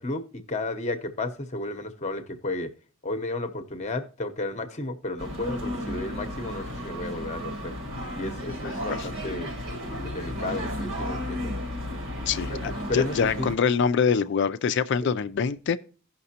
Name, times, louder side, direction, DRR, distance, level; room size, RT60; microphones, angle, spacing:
voice 1, 0.0-2.7 3.0-7.7 8.2-9.5 9.9-11.5 12.5-13.5 15.0-15.1, left 2 dB, 35° left, 0.8 m, -33 dB
sound 1, 5.2-13.5, equal, 65° right, 1.8 m, -33 dB
voice 2, 12.3-15.8, left 6 dB, 60° left, 0.4 m, -25 dB
16.5 x 5.8 x 2.8 m
head